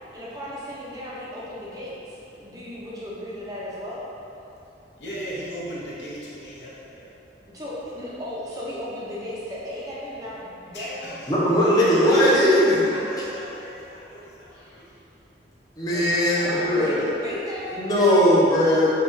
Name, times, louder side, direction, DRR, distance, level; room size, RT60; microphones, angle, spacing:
voice 1, 0.1-4.0 7.5-10.3 10.6-11.1 14.5-14.9 16.4-18.1, equal, 20° right, -7 dB, 0.5 m, -35 dB
voice 2, 5.0-7.1 10.7-14.9 15.8-17.1, equal, 70° left, -7 dB, 0.8 m, -35 dB
voice 3, 11.3-12.8 15.8-17.0 17.8-18.9, equal, 20° left, -8 dB, 0.6 m, -19 dB
5.5 x 2.3 x 2.6 m, 2.9 s
head